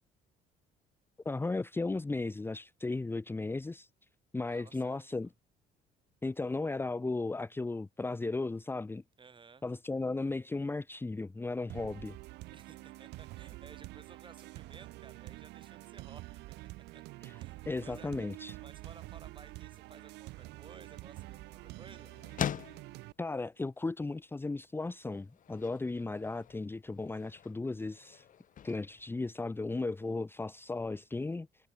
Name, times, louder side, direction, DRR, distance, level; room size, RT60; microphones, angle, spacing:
voice 1, 1.2-3.9 4.3-5.3 6.2-9.0 9.6-12.2 17.2-17.3 17.7-18.6 23.2-28.2 28.6-31.5, left 3 dB, 15° left, 0.9 m, -35 dB
voice 2, 4.5-5.1 9.2-9.7 12.5-16.4 16.9-17.0 17.4-18.1 18.6-22.1, right 5 dB, 30° right, 7.4 m, -56 dB
sound 1, 11.7-23.1, right 20 dB, 90° right, 2.9 m, -47 dB
sound 2, 20.3-30.1, left 9 dB, 50° left, 2.9 m, -45 dB
cardioid pair, 110°, 17 cm